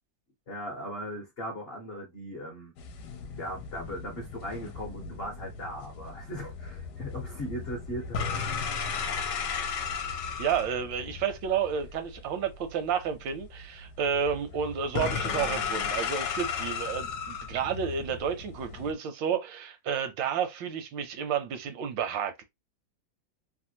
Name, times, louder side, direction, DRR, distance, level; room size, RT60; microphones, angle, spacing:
voice 1, 0.5-2.7 3.3-8.6, equal, 50° left, 0.8 m, -38 dB
sound 1, 2.8-18.9, left 6 dB, 70° left, 1.1 m, -35 dB
voice 2, 10.4-22.4, right 7 dB, 85° right, 1.4 m, -31 dB
3.4 x 2.2 x 2.7 m
omnidirectional pair, 2.0 m